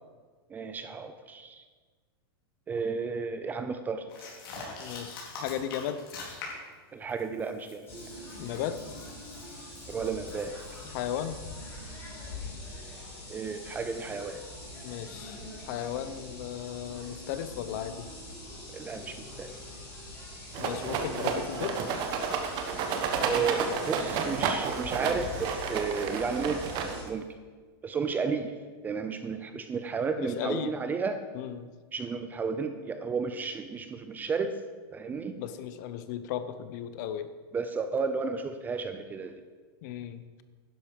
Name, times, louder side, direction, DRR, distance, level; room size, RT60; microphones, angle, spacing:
voice 1, 0.5-1.6 2.7-4.1 6.9-7.9 9.9-10.6 13.3-14.4 18.7-19.5 23.2-26.6 27.0-27.3 27.8-28.5 28.8-31.2 31.9-34.6 34.9-35.3 37.5-39.4, right 5 dB, 15° right, 9 dB, 0.6 m, -32 dB
sound 1, 4.1-6.7 7.1-10.9, left 3 dB, 60° left, 4.5 m, -44 dB
voice 2, 4.8-6.0 8.4-8.8 10.9-11.4 14.8-18.1 20.6-21.8 30.2-30.7 31.3-31.7 35.1-37.3 39.8-40.4, left 10 dB, 45° left, 12 dB, 0.9 m, -35 dB
sound 2, 7.9-27.0, left 2 dB, 20° left, 4.5 m, -43 dB
Rattle, 20.5-27.2, right 6 dB, 35° right, 1.3 m, -31 dB
11.5 x 10.5 x 5.2 m, 1.4 s
supercardioid pair, 160°, 13 cm